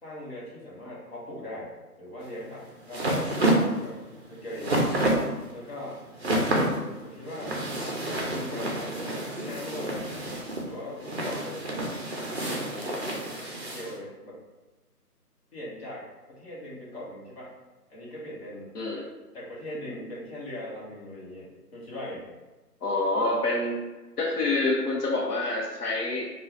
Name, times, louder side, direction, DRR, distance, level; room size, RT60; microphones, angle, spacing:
voice 1, 0.0-4.9 5.5-6.0 7.0-7.6 8.3-10.1 10.6-11.7 12.3-13.2 13.6-14.4 15.5-17.5 17.9-18.7 19.3-22.3, left 1 dB, 40° left, -7 dB, 1.1 m, -40 dB
sound 1, 2.2-13.9, right 1 dB, 45° right, 0.5 m, -29 dB
voice 2, 6.4-6.9 18.7-19.1 22.8-23.8 24.2-26.3, left 2 dB, 70° left, -2 dB, 0.8 m, -27 dB
4.4 x 2.4 x 2.4 m, 1.2 s
hypercardioid pair, 165°, 48 cm